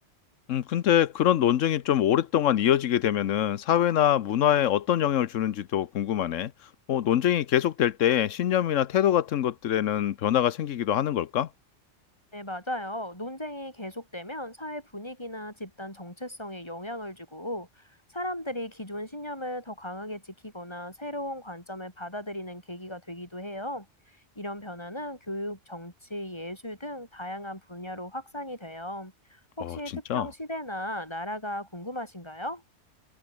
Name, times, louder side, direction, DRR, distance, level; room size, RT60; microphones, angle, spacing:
voice 1, 0.5-6.5 6.9-11.5 29.6-29.8 30.1-30.3, left 10 dB, 90° left, 1.2 m, -24 dB
voice 2, 12.3-17.8 18.1-23.9 24.4-32.6, left 1 dB, 20° left, 6.4 m, -37 dB
omnidirectional pair, 1.3 m